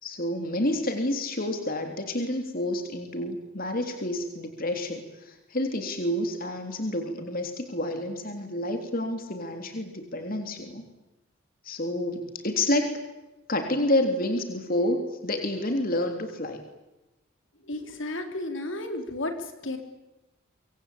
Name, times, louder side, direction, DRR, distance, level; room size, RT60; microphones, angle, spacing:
voice 1, 0.0-10.8 11.7-13.0 13.5-16.6, left 1 dB, 40° left, 5 dB, 3.5 m, -29 dB
voice 2, 17.7-19.3 19.6-19.8, left 2 dB, 60° left, 5 dB, 3.6 m, -32 dB
26.0 x 24.5 x 8.8 m, 0.99 s
head